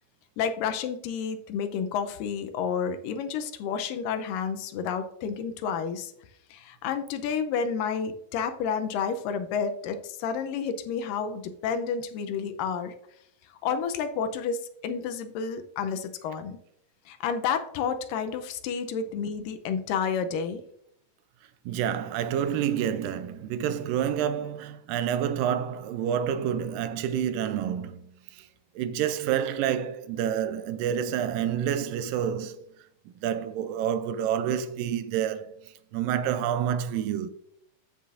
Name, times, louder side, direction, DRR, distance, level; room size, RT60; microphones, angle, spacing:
voice 1, 0.4-6.1 6.5-12.9 13.6-16.6 17.1-20.6, left 6 dB, 80° left, 2.3 m, -30 dB
voice 2, 21.7-28.0 28.3-28.5 28.8-32.6 33.2-37.3, right 9 dB, 85° right, 2.3 m, -28 dB
14.0 x 5.6 x 2.5 m
omnidirectional pair, 4.0 m